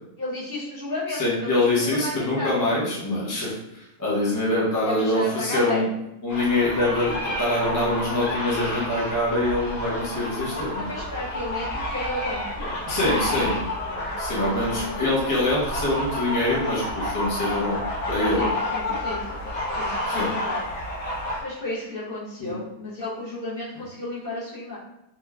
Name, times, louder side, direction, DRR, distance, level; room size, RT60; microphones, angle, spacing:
voice 1, 0.2-2.7 4.8-5.9 10.4-12.9 13.8-14.1 14.4-15.0 18.3-19.3 19.8-20.7 21.4-24.8, left 2 dB, 50° left, -9 dB, 0.8 m, -33 dB
voice 2, 1.1-5.9 6.2-10.9 12.9-13.6 14.2-18.4 20.1-20.3 22.4-22.5, left 1 dB, 25° left, -6 dB, 0.4 m, -24 dB
sound 1, 6.3-21.4, left 1 dB, 85° left, 1.2 m, -30 dB
3.0 x 2.2 x 2.3 m, 0.86 s
omnidirectional pair, 1.5 m